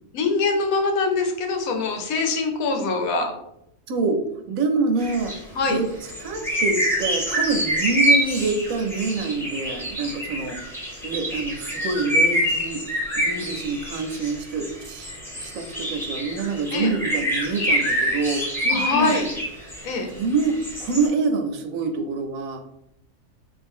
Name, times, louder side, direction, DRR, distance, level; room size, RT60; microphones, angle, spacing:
voice 1, 0.1-3.3 5.5-5.8 16.7-16.9 18.7-19.3 19.8-20.1, left 3 dB, 85° left, 4 dB, 1.2 m, -23 dB
voice 2, 3.9-4.2 4.5-5.3 5.7-5.9 6.2-10.6 11.0-12.8 13.2-19.2 20.2-22.6, right 4 dB, 80° right, 6 dB, 1.0 m, -26 dB
sound 1, 5.0-5.4 5.6-5.7 6.0-19.9 20.4-21.1, equal, ahead, 0.7 m, -26 dB
3.7 x 2.6 x 3.5 m, 0.79 s
omnidirectional pair, 1.4 m